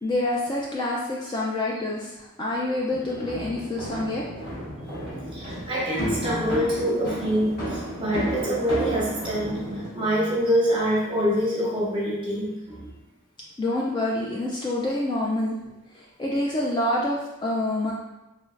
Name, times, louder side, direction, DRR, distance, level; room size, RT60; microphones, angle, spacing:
voice 1, 0.0-4.2 13.6-15.5 15.9-17.9, left 1 dB, 20° left, -3 dB, 0.3 m, -27 dB
sound 1, 2.9-9.9, right 1 dB, 45° left, 1.4 m, -32 dB
voice 2, 5.3-12.9, equal, 25° right, -6 dB, 1.1 m, -25 dB
3.2 x 3.0 x 2.4 m, 0.95 s
head